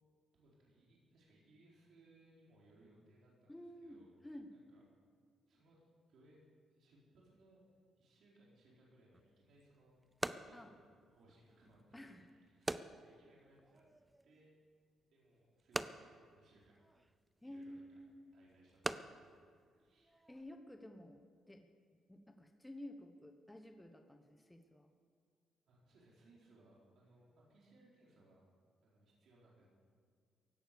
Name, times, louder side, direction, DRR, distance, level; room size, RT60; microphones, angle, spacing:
voice 1, 0.3-3.5 3.8-4.1 4.5-4.8 5.5-5.8 6.1-6.4 6.7-10.0 10.3-13.8 14.2-14.6 15.1-16.8 17.4-17.8 18.3-20.2 25.7-28.4 28.8-29.7, right 1 dB, 65° right, -4 dB, 4.2 m, -67 dB
voice 2, 3.5-4.5 10.5-10.7 11.9-12.3 17.4-18.3 20.3-21.7 22.1-24.9, left 1 dB, 10° left, 5 dB, 1.0 m, -52 dB
sound 1, 9.1-20.5, right 1 dB, 10° right, 0.5 m, -47 dB
16.5 x 11.0 x 6.9 m, 2.1 s
cardioid pair, 120°, 0 cm